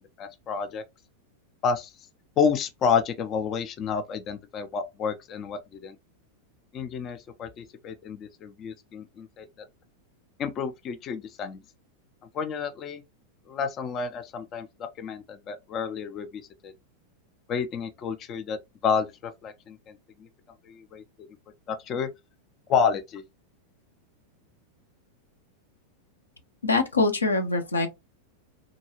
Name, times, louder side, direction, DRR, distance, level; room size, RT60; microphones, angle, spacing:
voice 1, 0.2-0.8 1.6-2.1 2.4-6.0 6.7-9.7 10.4-11.6 12.3-13.0 13.5-14.7 15.0-16.7 17.5-20.3 20.6-21.3 21.7-22.1 22.7-23.2, left 6 dB, 30° left, 0.4 m, -30 dB
voice 2, 26.6-27.9, left 3 dB, 75° left, 0.7 m, -23 dB
3.6 x 2.3 x 2.9 m
figure-of-eight pair, 90°, 0 cm